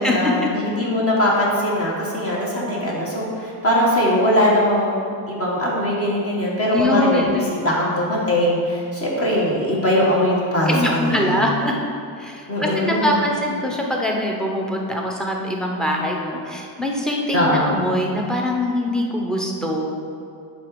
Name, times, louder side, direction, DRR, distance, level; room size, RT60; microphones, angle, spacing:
voice 1, 0.0-11.4 12.5-13.2 17.3-17.8, equal, 30° left, -4 dB, 1.5 m, -21 dB
voice 2, 6.7-7.5 10.7-11.7 12.2-20.0, left 1 dB, ahead, 0 dB, 0.8 m, -23 dB
8.9 x 4.1 x 6.9 m, 2.4 s
cardioid pair, 160°, 47 cm